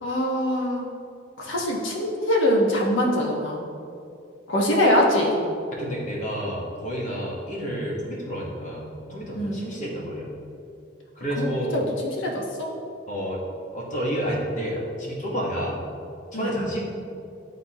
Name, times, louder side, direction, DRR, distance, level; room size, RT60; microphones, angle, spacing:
voice 1, 0.0-0.9 1.4-3.6 4.5-5.4 9.3-9.6 11.4-11.8 12.2-12.7 16.3-16.8, left 1 dB, 80° left, -1 dB, 1.1 m, -23 dB
voice 2, 5.7-10.3 11.1-11.8 13.1-13.4 13.7-15.8 16.3-16.8, equal, 40° left, -4 dB, 1.2 m, -30 dB
10.0 x 3.6 x 2.9 m, 2.6 s
head